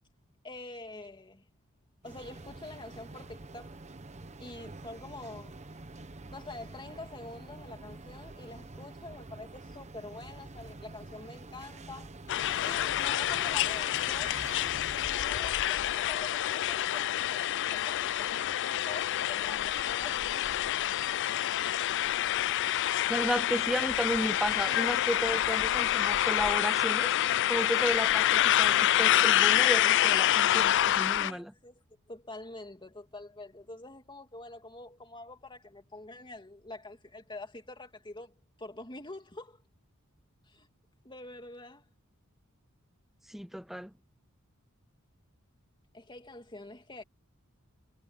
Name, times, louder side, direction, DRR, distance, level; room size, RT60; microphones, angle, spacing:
voice 1, 0.4-1.5 2.0-3.8 4.4-5.6 6.3-12.1 12.6-14.4 15.0-20.4 31.0-31.8 32.1-39.6 40.5-40.7 41.0-41.8 45.9-47.0, left 2 dB, 20° left, 2.6 m, -46 dB
sound 1, 2.0-15.1, right 2 dB, 35° right, 1.0 m, -47 dB
sound 2, 12.3-31.3, left 12 dB, 60° left, 0.4 m, -27 dB
voice 2, 23.1-27.1 27.5-31.5 43.3-43.9, equal, ahead, 0.4 m, -33 dB
head